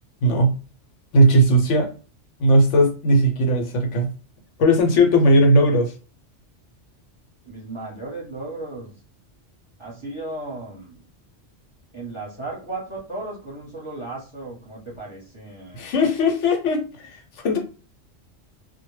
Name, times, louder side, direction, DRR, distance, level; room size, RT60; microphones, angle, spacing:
voice 1, 0.2-0.5 1.1-1.9 2.4-4.1 4.6-5.9 15.7-17.6, equal, 80° left, 4 dB, 1.0 m, -18 dB
voice 2, 7.4-9.0 9.8-11.0 11.9-15.8, right 2 dB, 25° right, -4 dB, 0.8 m, -35 dB
2.2 x 2.1 x 3.1 m, 0.36 s
omnidirectional pair, 1.2 m